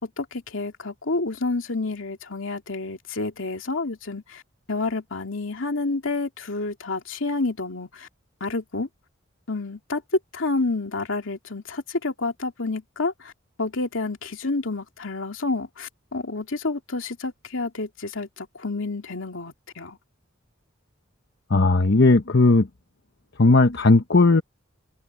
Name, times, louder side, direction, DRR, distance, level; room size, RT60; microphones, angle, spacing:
voice 1, 0.0-4.4 4.7-8.1 8.4-8.9 9.5-10.0 10.3-13.3 13.6-20.0, left 3 dB, 75° left, 2.5 m, -29 dB
voice 2, 21.5-22.7 23.4-24.4, left 3 dB, 60° left, 0.9 m, -16 dB
head